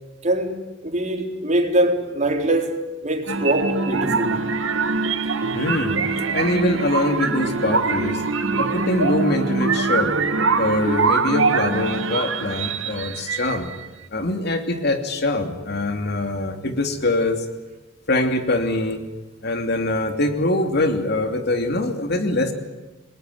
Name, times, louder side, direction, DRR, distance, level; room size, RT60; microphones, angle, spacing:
voice 1, 0.2-0.6 0.8-4.4, right 1 dB, 35° right, 4.0 m, -23 dB
sound 1, 3.3-13.9, right 4 dB, 85° right, 2.1 m, -23 dB
voice 2, 5.5-6.0 6.3-8.2 8.5-10.2 10.6-13.7 14.1-17.5 18.1-19.0 19.4-22.5, left 2 dB, 55° left, 3.0 m, -23 dB
28.5 x 20.5 x 9.6 m
head